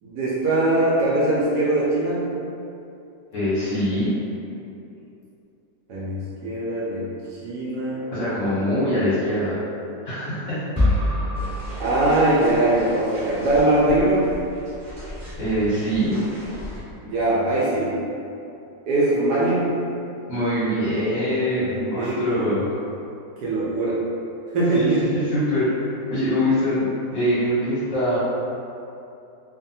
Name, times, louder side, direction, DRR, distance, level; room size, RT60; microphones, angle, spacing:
voice 1, 0.0-2.3 5.9-7.0 7.3-8.1 11.8-14.4 17.0-17.9 18.9-19.7 21.6-21.7 22.0-22.6 23.4-24.0 24.5-25.2, right 2 dB, 70° right, -7 dB, 1.1 m, -21 dB
voice 2, 3.3-4.1 8.1-9.5 10.0-10.6 15.3-16.2 20.3-22.6 24.7-28.2, equal, 55° left, -12 dB, 0.9 m, -23 dB
sound 1, 10.8-12.8, left 1 dB, 5° right, 1.0 m, -25 dB
sound 2, 11.3-16.8, equal, 50° right, 0.6 m, -37 dB
2.6 x 2.5 x 2.6 m, 2.7 s
omnidirectional pair, 2.0 m